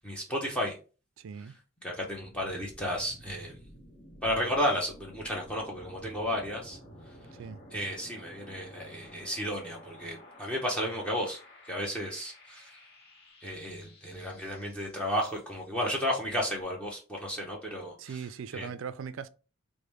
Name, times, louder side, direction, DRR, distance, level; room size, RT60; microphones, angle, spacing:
voice 1, 0.0-0.8 1.8-3.6 4.2-6.8 7.7-11.4 11.6-12.8 13.4-18.2 18.5-18.7, equal, 5° left, 0.7 m, -33 dB
voice 2, 1.2-1.6 7.4-7.6 18.0-19.3, right 6 dB, 60° right, 0.3 m, -39 dB
sound 1, 1.9-15.7, equal, 45° left, 1.0 m, -52 dB
5.0 x 2.1 x 3.0 m
head